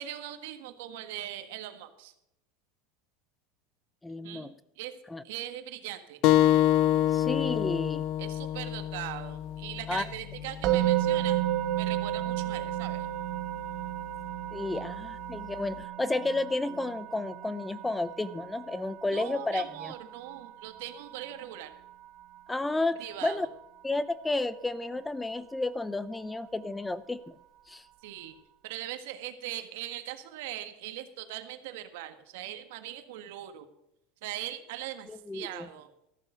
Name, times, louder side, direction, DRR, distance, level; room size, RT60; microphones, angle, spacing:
voice 1, 0.0-2.1 4.2-4.5 4.8-4.9 5.2-6.2 8.2-11.4 11.8-13.1 14.7-14.9 19.1-21.7 23.0-23.5 28.0-28.3 28.6-33.7 34.2-35.9, right 13 dB, 75° right, 9 dB, 1.6 m, -40 dB
voice 2, 4.0-4.5 5.1-5.2 7.1-8.0 9.9-10.0 14.5-19.9 22.5-23.5 23.8-27.3 27.7-27.8 35.1-35.7, left 2 dB, 10° left, 17 dB, 0.5 m, -32 dB
sound 1, 6.2-11.4, left 13 dB, 55° left, 0.6 m, -27 dB
Musical instrument, 10.6-21.7, right 14 dB, 50° right, 1.5 m, -32 dB
14.0 x 7.3 x 6.8 m, 0.82 s
supercardioid pair, 130°, 0 cm